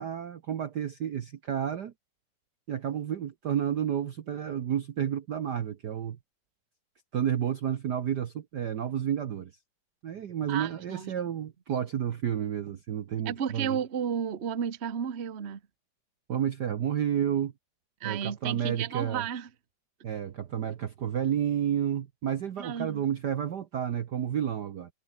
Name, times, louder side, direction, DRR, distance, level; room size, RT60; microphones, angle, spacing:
voice 1, 0.0-1.9 2.7-6.2 7.1-9.5 10.0-13.8 16.3-17.5 18.0-19.3 20.0-24.9, right 9 dB, 90° right, 0.9 m, -31 dB
voice 2, 10.5-11.1 13.2-15.6 18.0-19.5 22.6-23.0, right 8 dB, 60° right, 0.6 m, -32 dB
omnidirectional pair, 3.3 m